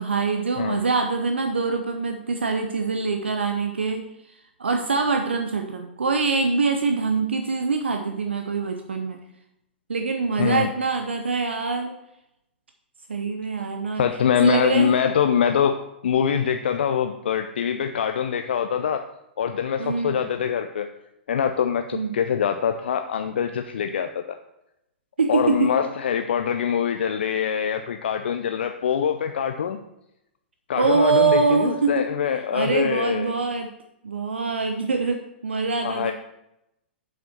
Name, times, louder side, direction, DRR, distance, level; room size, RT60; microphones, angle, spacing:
voice 1, 0.0-4.1 4.6-9.2 9.9-11.9 13.1-14.0 14.4-14.9 19.8-20.2 21.9-22.1 25.2-25.7 30.8-32.1 32.5-33.7 34.0-36.1, right 4 dB, 80° right, 5 dB, 0.7 m, -24 dB
voice 2, 10.4-10.7 14.0-19.1 19.4-20.9 21.3-24.4 25.3-29.8 30.7-33.3 35.8-36.1, left 8 dB, 65° left, 6 dB, 0.5 m, -24 dB
7.2 x 5.8 x 4.4 m, 0.85 s
figure-of-eight pair, 110°, 6 cm